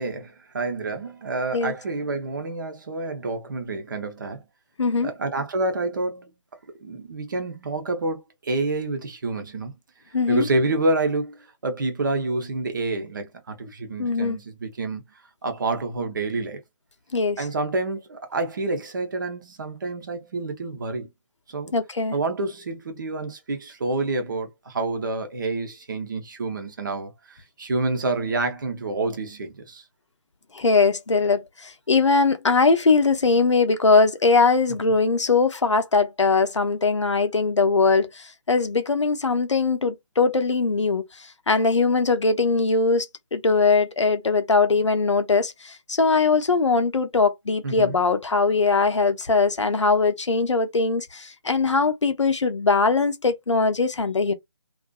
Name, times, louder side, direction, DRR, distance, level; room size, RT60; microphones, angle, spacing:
voice 1, 0.0-4.4 5.0-6.3 6.8-9.7 10.3-11.4 11.6-15.0 15.4-16.6 17.4-21.1 21.5-21.7 22.1-29.8 34.8-35.0 47.6-48.0, right 2 dB, 40° right, 0.6 m, -28 dB
voice 2, 4.8-5.1 10.1-10.5 14.0-14.4 17.1-17.4 21.7-22.2 30.5-38.1 38.5-41.0 41.5-54.3, left 4 dB, 70° left, 0.6 m, -21 dB
2.5 x 2.4 x 2.2 m
figure-of-eight pair, 150°, 16 cm